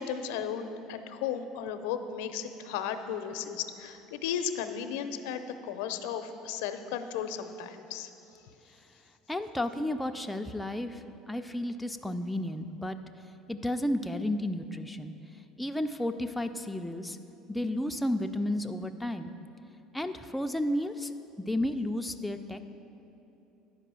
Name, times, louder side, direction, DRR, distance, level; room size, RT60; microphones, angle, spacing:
voice 1, 0.0-8.1, left 8 dB, 90° left, 9 dB, 0.5 m, -35 dB
voice 2, 9.3-13.0 13.5-15.1 15.6-17.2 17.5-19.3 19.9-21.1 21.5-22.6, left 1 dB, 5° left, 5 dB, 0.3 m, -32 dB
10.0 x 4.9 x 6.1 m, 3.0 s
cardioid pair, 135°, 0 cm